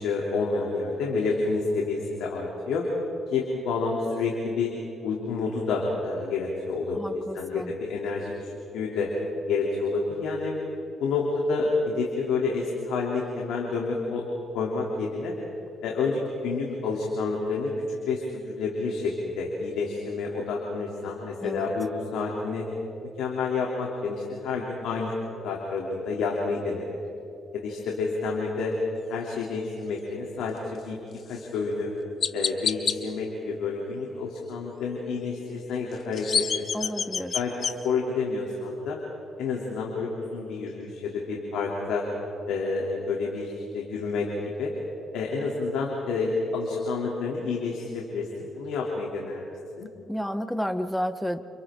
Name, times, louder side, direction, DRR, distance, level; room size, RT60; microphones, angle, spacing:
voice 1, 0.0-2.9 3.3-4.7 5.0-9.1 9.5-10.5 11.0-14.2 14.5-15.3 15.8-17.7 18.1-22.6 23.2-25.1 25.4-27.0 27.5-28.7 29.1-31.0 31.3-31.9 32.3-36.9 37.3-37.5 37.8-39.0 39.4-42.0 42.5-44.3 44.6-44.7 45.1-49.5 49.8-49.9, left 4 dB, 90° left, -2 dB, 3.1 m, -29 dB
voice 2, 6.9-7.7 21.4-21.7 36.7-37.4 50.1-51.4, equal, 5° left, 10 dB, 1.2 m, -31 dB
Chirp tweet, 31.3-31.5 32.2-33.0 35.9-37.7, left 6 dB, 50° left, 1.0 m, -27 dB
30.0 x 28.5 x 3.8 m, 2.7 s
cardioid pair, 90°, 0 cm